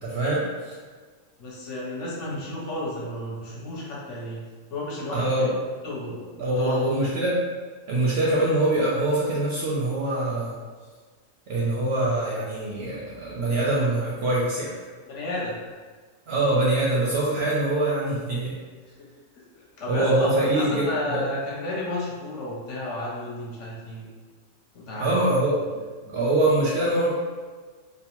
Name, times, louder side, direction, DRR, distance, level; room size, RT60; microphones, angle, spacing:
voice 1, 0.0-0.8 5.1-5.5 6.4-7.4 7.9-10.6 11.5-14.7 16.3-18.5 19.9-21.2 25.0-25.6 26.1-27.1, right 1 dB, 65° right, -6 dB, 0.7 m, -24 dB
voice 2, 1.4-5.3 5.8-6.2 6.6-6.8 15.1-15.6 19.0-19.1 19.6-24.1 24.7-25.3 26.0-26.2, left 1 dB, 65° left, -5 dB, 0.9 m, -32 dB
2.7 x 2.0 x 2.9 m, 1.4 s
omnidirectional pair, 1.5 m